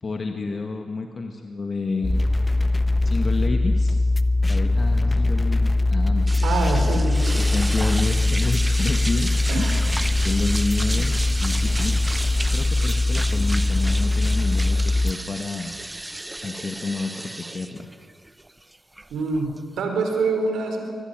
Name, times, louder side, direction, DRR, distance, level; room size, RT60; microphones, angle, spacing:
voice 1, 0.0-2.3 3.0-4.0 4.5-6.7 7.5-9.8 10.2-12.0 12.5-15.7 16.4-17.9, left 3 dB, 45° left, 4 dB, 2.0 m, -29 dB
sound 1, 2.0-15.1, left 2 dB, 25° left, 1.2 m, -21 dB
sound 2, 6.3-19.8, right 1 dB, 15° right, 1.0 m, -33 dB
voice 2, 6.4-7.5 9.5-10.1 19.1-20.9, right 3 dB, 80° right, 4 dB, 4.8 m, -26 dB
24.5 x 20.0 x 9.4 m, 2.1 s
supercardioid pair, 45°, 0 cm